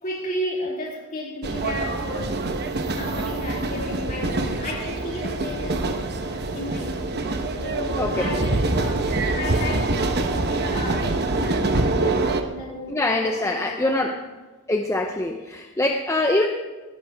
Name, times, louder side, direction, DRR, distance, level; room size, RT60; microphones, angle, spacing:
voice 1, 0.0-2.5 2.9-5.9 6.2-7.3 7.6-11.8 12.4-14.2, left 1 dB, 40° left, -2 dB, 3.2 m, -33 dB
sound 1, 1.4-12.4, right 2 dB, 50° right, 1.0 m, -25 dB
voice 2, 12.9-14.1 14.7-16.5, left 2 dB, 15° left, 3 dB, 0.7 m, -23 dB
18.0 x 12.5 x 3.5 m, 1.3 s
head